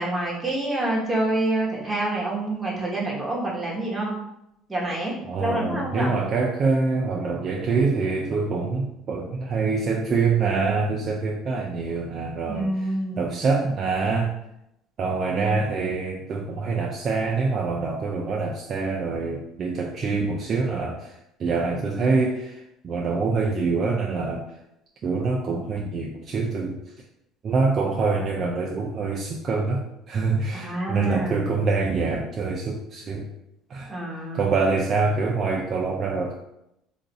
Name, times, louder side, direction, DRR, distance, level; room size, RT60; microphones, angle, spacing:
voice 1, 0.0-4.1 4.7-6.1 12.5-13.3 15.3-15.8 30.5-31.4 33.9-34.5, right 2 dB, 10° right, -5 dB, 1.0 m, -27 dB
voice 2, 5.2-12.7 13.2-14.4 15.0-24.4 25.0-26.8 27.4-33.3 33.7-33.9 34.3-36.3, right 4 dB, 40° right, -1 dB, 0.3 m, -25 dB
2.5 x 2.3 x 3.9 m, 0.83 s
cardioid pair, 120°, 0 cm